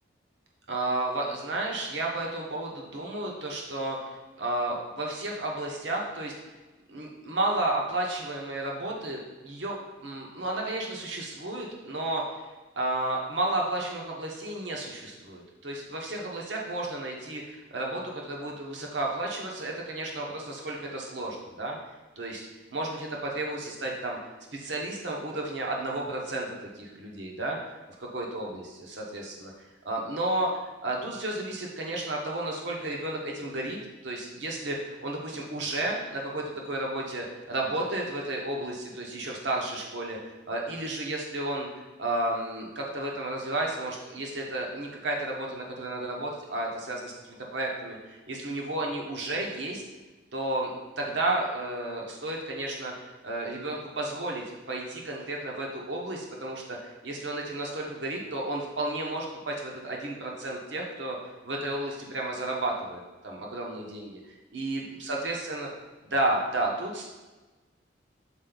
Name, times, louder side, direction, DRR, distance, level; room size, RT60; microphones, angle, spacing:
voice 1, 0.7-6.3 6.9-9.8 10.0-12.4 12.8-21.8 22.2-24.2 24.5-27.6 28.1-29.5 29.8-30.5 30.8-49.8 50.3-50.7 51.0-61.2 61.4-64.2 64.5-65.7 66.0-67.1, right 2 dB, 80° right, -1 dB, 1.1 m, -32 dB
6.4 x 4.4 x 3.9 m, 1.2 s
head